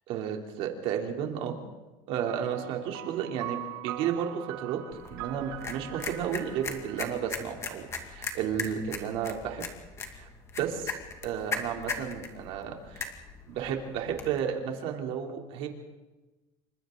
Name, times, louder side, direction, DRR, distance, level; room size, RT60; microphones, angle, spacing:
voice 1, 0.1-1.5 2.1-4.8 5.1-9.6 10.1-10.3 10.6-11.0 11.2-13.1 13.5-15.7, right 8 dB, 60° right, 2 dB, 3.4 m, -32 dB
sound 1, 2.3-8.0, right 15 dB, 80° right, 1.1 m, -42 dB
sound 2, 4.9-14.4, left 4 dB, 25° left, 2.2 m, -39 dB
28.0 x 25.0 x 4.0 m, 1.1 s
cardioid pair, 150°, 11 cm